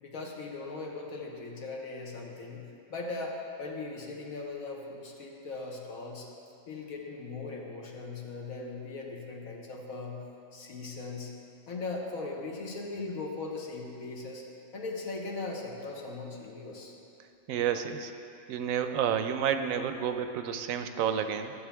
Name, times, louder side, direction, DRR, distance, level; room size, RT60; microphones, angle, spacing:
voice 1, 0.0-6.3 6.7-10.2 10.5-11.3 11.7-14.4 14.7-16.9, left 3 dB, 80° left, -1 dB, 1.5 m, -39 dB
voice 2, 17.5-18.1 18.5-21.5, right 8 dB, 75° right, 8 dB, 1.0 m, -30 dB
14.0 x 7.1 x 3.5 m, 2.8 s
omnidirectional pair, 1.4 m